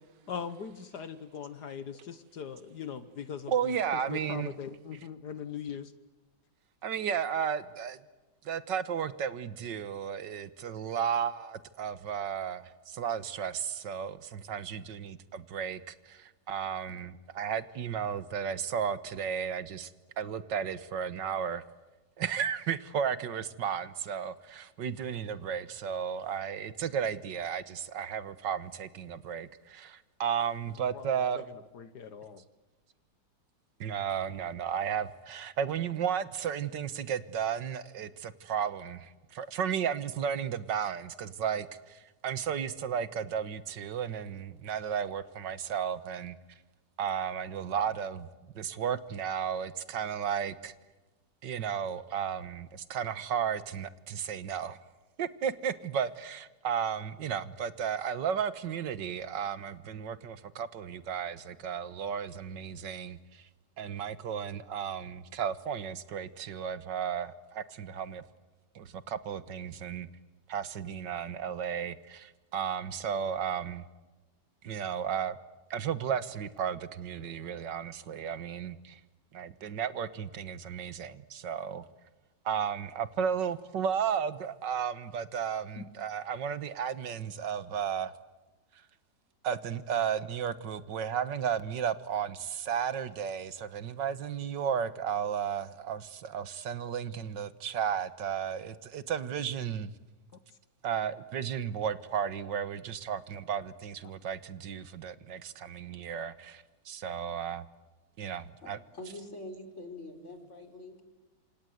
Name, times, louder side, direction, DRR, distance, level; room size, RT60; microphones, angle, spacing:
voice 1, 0.3-3.8 4.1-5.9 30.9-31.4 31.7-32.4 85.8-85.9, left 7 dB, 65° left, 12 dB, 1.7 m, -40 dB
voice 2, 3.5-4.5 6.8-8.0 8.5-19.9 20.2-21.6 22.2-31.6 33.8-46.4 47.0-48.3 48.6-50.7 51.4-54.8 55.2-63.4 63.8-68.2 68.8-70.1 70.5-73.8 74.6-75.4 75.7-79.0 79.3-81.8 82.5-88.1 89.4-99.9 100.8-107.7 108.2-108.8, right 8 dB, 90° right, 14 dB, 1.9 m, -34 dB
voice 3, 108.6-111.0, left 1 dB, 40° left, 6 dB, 4.8 m, -45 dB
27.5 x 27.0 x 8.0 m, 1.1 s
omnidirectional pair, 1.9 m